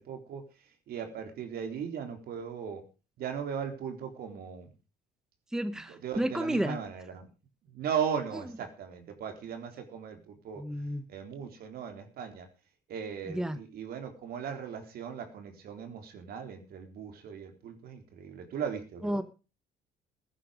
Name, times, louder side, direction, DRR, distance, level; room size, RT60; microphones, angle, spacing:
voice 1, 0.1-0.4 0.9-2.8 3.2-4.7 5.7-7.3 7.7-10.6 11.1-12.5 12.9-19.2, right 7 dB, 65° right, 6 dB, 3.9 m, -37 dB
voice 2, 5.5-6.8 10.6-11.1 13.3-13.6 19.0-19.2, right 1 dB, 5° right, 12 dB, 1.1 m, -31 dB
16.0 x 10.0 x 5.2 m, 0.34 s
cardioid pair, 110°, 17 cm